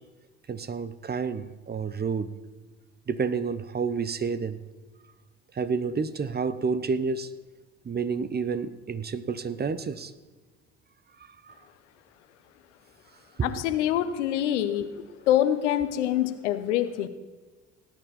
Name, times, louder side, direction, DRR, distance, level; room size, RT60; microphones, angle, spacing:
voice 1, 0.5-2.3 3.1-4.6 5.6-7.3 7.8-10.1 11.5-11.6 13.4-13.5, right 5 dB, 30° right, 0.8 m, -29 dB
voice 2, 13.4-14.9 15.3-17.1, left 11 dB, 85° left, 0.8 m, -25 dB
18.0 x 9.1 x 4.2 m
hypercardioid pair, 55°, 34 cm